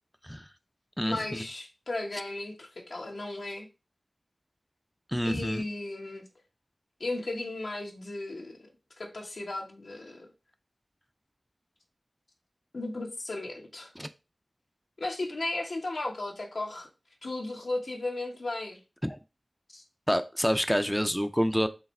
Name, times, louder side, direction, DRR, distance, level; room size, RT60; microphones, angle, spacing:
voice 1, 1.0-3.7 5.2-6.2 7.0-8.6 9.0-10.3 12.7-13.9 15.0-16.9 17.2-18.8 19.7-19.8, left 2 dB, 85° left, 1.2 m, -35 dB
voice 2, 5.1-5.6 14.0-14.1 19.0-19.2 20.1-21.7, equal, ahead, 0.4 m, -27 dB
4.7 x 3.4 x 3.2 m
wide cardioid pair, 60°, 0 cm